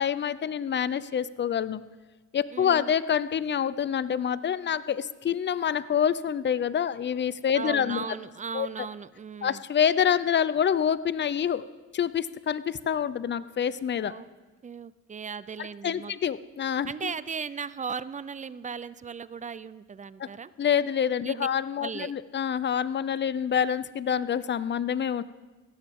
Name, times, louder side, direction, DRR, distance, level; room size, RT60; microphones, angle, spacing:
voice 1, 0.0-1.8 2.3-8.1 8.5-8.7 9.4-11.6 11.9-14.1 15.8-17.1 20.2-20.3 20.6-25.2, left 8 dB, 35° left, 16 dB, 0.6 m, -27 dB
voice 2, 2.5-2.9 7.5-9.6 14.0-14.3 14.6-16.1 16.9-20.5 21.2-21.5 21.8-22.1, right 6 dB, 25° right, 17 dB, 0.4 m, -37 dB
16.5 x 13.0 x 3.6 m, 1.2 s
cardioid pair, 90°, 30 cm